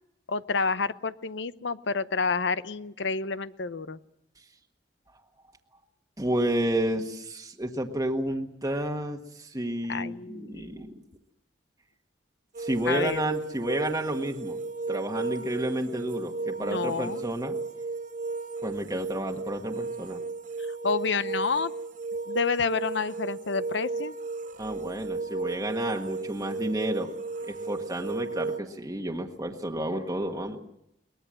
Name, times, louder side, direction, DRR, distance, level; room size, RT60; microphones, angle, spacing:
voice 1, 0.3-4.0 9.9-10.8 12.8-13.2 16.6-17.3 20.6-21.7 22.3-24.1, left 4 dB, 70° left, 14 dB, 0.8 m, -29 dB
voice 2, 6.2-11.0 12.6-14.6 14.9-17.6 18.6-20.2 24.6-27.1 27.5-30.6, right 1 dB, 20° right, 2 dB, 1.4 m, -31 dB
sound 1, 12.5-28.6, right 3 dB, 40° right, 0.8 m, -35 dB
22.5 x 20.0 x 7.7 m, 0.81 s
head